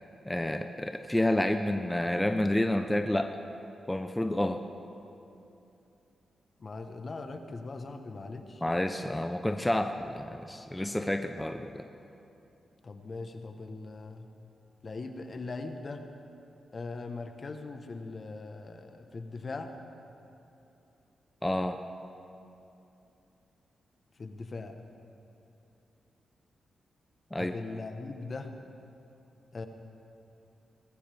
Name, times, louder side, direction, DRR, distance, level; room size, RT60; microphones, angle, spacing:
voice 1, 0.2-3.4 3.9-4.6 8.6-11.9 21.4-21.8 27.3-27.5, left 1 dB, 10° left, 7 dB, 0.7 m, -29 dB
voice 2, 6.6-8.6 12.8-14.3 14.8-16.0 16.7-19.7 24.2-24.7 27.4-28.5 29.5-29.7, left 3 dB, 50° left, 6 dB, 1.2 m, -40 dB
20.0 x 14.5 x 3.5 m, 2.8 s
supercardioid pair, 50°, 0 cm